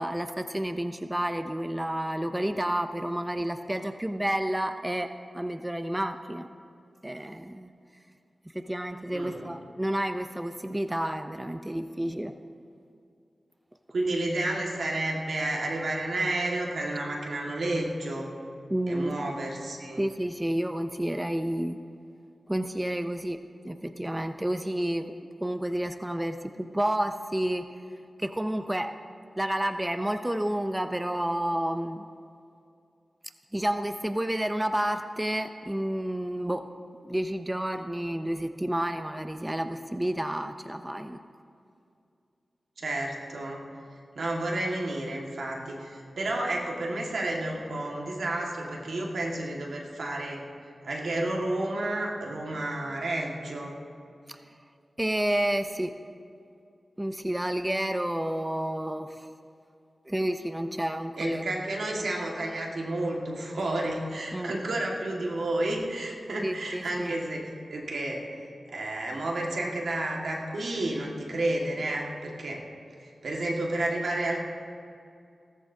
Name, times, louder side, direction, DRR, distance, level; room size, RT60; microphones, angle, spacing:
voice 1, 0.0-6.5 7.0-7.7 8.5-12.3 18.7-19.1 20.0-21.8 22.5-25.1 25.4-27.7 28.2-29.0 29.4-32.1 33.5-36.7 37.0-41.2 54.3-54.4 55.0-56.0 57.0-59.3 60.1-61.4 64.3-64.5 66.4-67.1, right 1 dB, 15° right, 9 dB, 0.5 m, -30 dB
voice 2, 9.1-9.5 13.9-18.3 18.9-20.0 42.8-43.6 44.2-50.4 50.8-53.8 61.2-67.4 67.7-68.4 68.7-72.6 73.0-74.4, right 1 dB, 85° right, -1 dB, 1.8 m, -31 dB
17.5 x 14.0 x 2.8 m, 2.5 s
cardioid pair, 55°, 0 cm